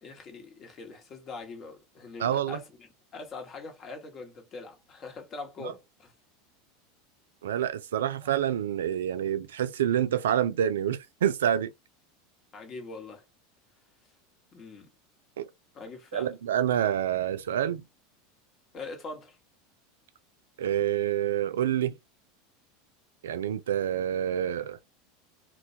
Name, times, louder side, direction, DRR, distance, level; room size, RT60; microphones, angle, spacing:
voice 1, 0.0-6.1 8.2-8.3 12.5-13.2 14.5-14.9 15.7-16.3 18.7-19.4, left 3 dB, 40° left, 1.0 m, -43 dB
voice 2, 2.2-2.6 5.6-5.7 7.4-11.7 15.4-15.5 16.1-17.8 20.6-21.9 23.2-24.8, right 10 dB, 85° right, 0.3 m, -27 dB
2.2 x 2.1 x 2.7 m
hypercardioid pair, 95°, 0 cm